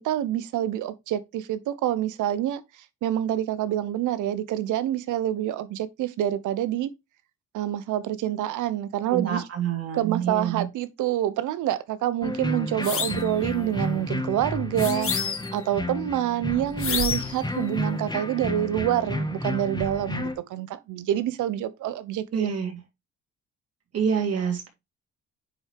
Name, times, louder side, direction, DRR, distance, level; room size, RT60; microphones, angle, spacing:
voice 1, 0.0-2.6 3.0-6.9 7.5-9.4 9.9-22.5, right 12 dB, 85° right, 0.9 m, -27 dB
voice 2, 9.1-10.7 22.3-22.8 23.9-24.7, right 7 dB, 55° right, 3.3 m, -27 dB
sound 1, 12.2-20.3, left 1 dB, 15° left, 2.0 m, -31 dB
sound 2, 12.8-13.3 14.8-15.6 16.8-17.4, left 7 dB, 45° left, 1.4 m, -29 dB
9.6 x 4.4 x 3.4 m
cardioid pair, 90°, 30 cm